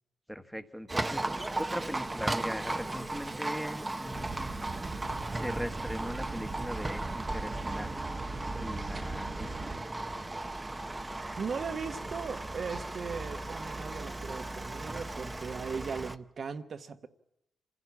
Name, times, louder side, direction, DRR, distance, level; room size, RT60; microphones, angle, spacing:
voice 1, 0.3-4.5 5.3-8.1 8.5-9.7, equal, ahead, 1.4 m, -40 dB
Livestock farm animals working animals, 0.9-16.2, right 2 dB, 20° right, 0.9 m, -36 dB
sound 1, 4.1-9.8, right 3 dB, 35° right, 1.2 m, -40 dB
voice 2, 11.2-17.1, right 5 dB, 55° right, 1.2 m, -38 dB
27.0 x 16.5 x 8.5 m
cardioid pair, 105°, 0 cm